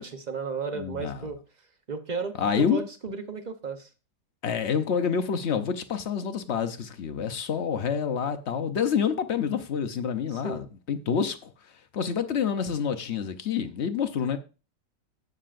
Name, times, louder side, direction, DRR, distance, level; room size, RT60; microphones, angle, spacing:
voice 1, 0.0-1.4 1.9-3.9 10.3-10.6, right 4 dB, 40° right, 0.6 m, -34 dB
voice 2, 0.7-1.3 2.4-2.8 4.4-11.5 11.9-14.4, left 7 dB, 55° left, 0.7 m, -28 dB
17.5 x 6.6 x 2.5 m
omnidirectional pair, 1.9 m